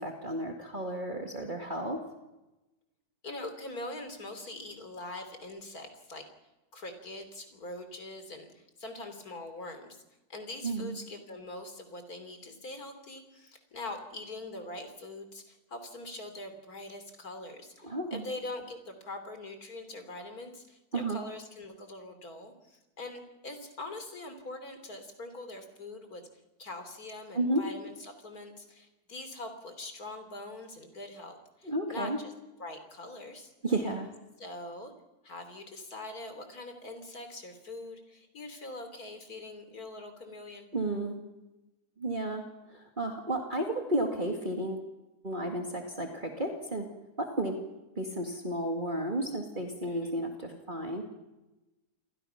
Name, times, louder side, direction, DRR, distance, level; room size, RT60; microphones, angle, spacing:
voice 1, 0.0-2.0 10.6-11.0 17.8-18.3 20.9-21.2 27.3-27.6 31.6-32.2 33.6-34.1 40.7-41.3 42.0-44.9 45.2-46.9 47.2-47.6 48.0-51.0, right 1 dB, 30° right, 2 dB, 2.2 m, -32 dB
voice 2, 3.2-6.2 6.7-10.0 10.3-26.2 26.6-32.1 32.6-33.5 34.4-34.9 35.2-40.7 49.8-50.1, left 2 dB, 65° left, 7 dB, 3.7 m, -43 dB
28.0 x 22.0 x 5.8 m, 1.0 s
omnidirectional pair, 1.7 m